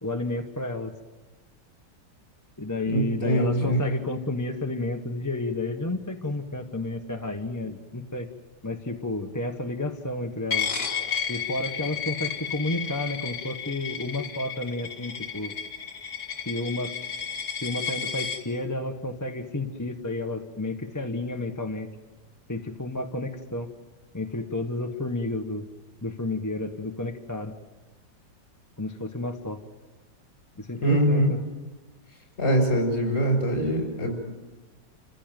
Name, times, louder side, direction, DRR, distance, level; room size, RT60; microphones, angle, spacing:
voice 1, 0.0-0.9 2.6-8.3 8.6-10.7 11.3-15.5 16.5-16.9 17.6-21.9 22.5-23.7 24.1-25.6 26.0-27.5 28.8-29.6 30.6-31.4, left 2 dB, 15° left, 4 dB, 1.0 m, -31 dB
voice 2, 2.9-3.8 30.8-31.3 32.4-34.1, equal, 35° left, 3 dB, 6.0 m, -23 dB
Coin (dropping), 10.5-18.4, left 7 dB, 60° left, 2.5 m, -32 dB
29.0 x 15.5 x 9.2 m, 1.2 s
omnidirectional pair, 1.9 m